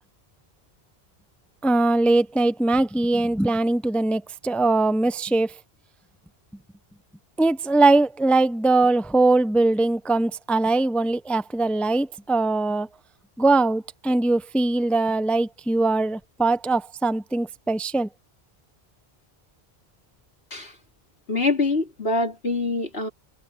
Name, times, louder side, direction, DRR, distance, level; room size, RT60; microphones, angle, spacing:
voice 1, 1.6-5.5 7.4-12.9 13.4-18.1, right 2 dB, ahead, 0.4 m, -21 dB
voice 2, 21.3-23.1, left 3 dB, 75° left, 4.3 m, -24 dB
omnidirectional pair, 1.1 m